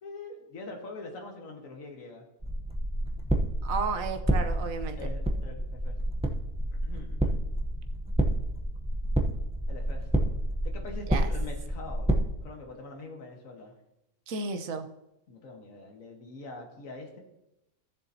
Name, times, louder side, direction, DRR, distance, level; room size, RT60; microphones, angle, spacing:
voice 1, 0.0-2.3 5.0-6.2 6.8-7.4 9.7-10.4 10.6-12.1 12.4-13.7 15.3-17.2, left 3 dB, 60° left, 2 dB, 1.8 m, -44 dB
sound 1, 2.4-12.2, right 1 dB, 10° right, 0.4 m, -29 dB
voice 2, 3.6-5.0 11.1-11.3 14.3-14.9, right 4 dB, 65° right, 7 dB, 1.2 m, -32 dB
15.0 x 7.0 x 2.8 m, 0.88 s
omnidirectional pair, 1.6 m